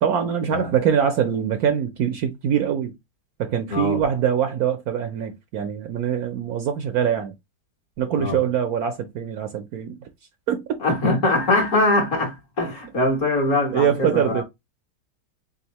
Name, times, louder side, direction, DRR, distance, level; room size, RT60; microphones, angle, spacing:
voice 1, 0.0-2.9 3.4-7.3 8.0-10.0 10.5-10.8 13.7-14.4, right 8 dB, 70° right, 0.9 m, -23 dB
voice 2, 3.7-4.0 8.2-8.4 10.8-14.4, left 2 dB, 50° left, 1.5 m, -22 dB
3.9 x 3.6 x 2.9 m
omnidirectional pair, 1.9 m